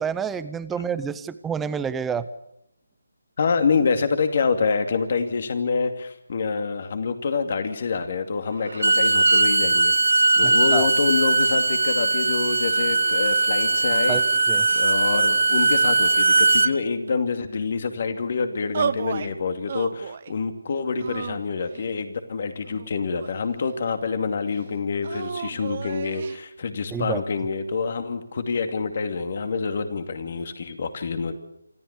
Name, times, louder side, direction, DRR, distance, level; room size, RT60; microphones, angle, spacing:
voice 1, 0.0-2.3 10.4-10.9 14.1-14.2 14.5-14.7 26.9-27.2, right 7 dB, 5° right, 14 dB, 0.7 m, -28 dB
voice 2, 3.4-14.2 14.7-31.3, left 5 dB, 45° left, 8 dB, 2.6 m, -26 dB
Bowed string instrument, 8.7-16.7, right 3 dB, 70° right, 1.1 m, -20 dB
sound 1, 18.7-19.3 19.7-20.4 21.0-21.9 22.7-23.7 25.0-26.4, right 7 dB, 40° right, 1.0 m, -32 dB
26.5 x 14.0 x 8.4 m, 0.79 s
figure-of-eight pair, 160°, 0 cm